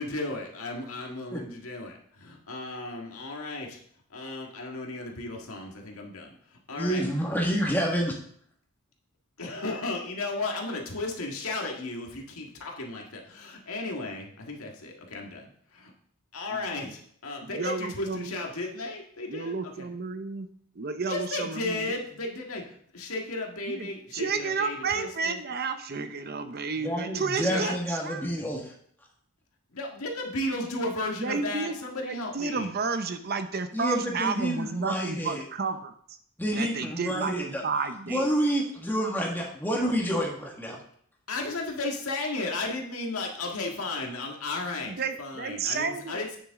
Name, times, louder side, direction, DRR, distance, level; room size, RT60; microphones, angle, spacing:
voice 1, 0.0-3.8 4.1-6.3 6.7-7.0 9.4-15.9 16.3-19.9 21.1-25.4 27.4-27.8 29.7-32.7 41.3-46.4, left 2 dB, 85° left, 1 dB, 1.7 m, -34 dB
voice 2, 6.8-8.1 26.8-28.7 33.7-35.4 36.4-37.6 38.1-40.8, equal, 10° left, -2 dB, 1.6 m, -28 dB
voice 3, 17.4-18.5 19.3-20.5 20.8-21.9 23.7-28.3 31.2-31.8 32.0-35.9 36.5-38.3 44.9-46.4, right 4 dB, 45° right, 9 dB, 0.7 m, -32 dB
9.1 x 6.9 x 3.7 m, 0.62 s
head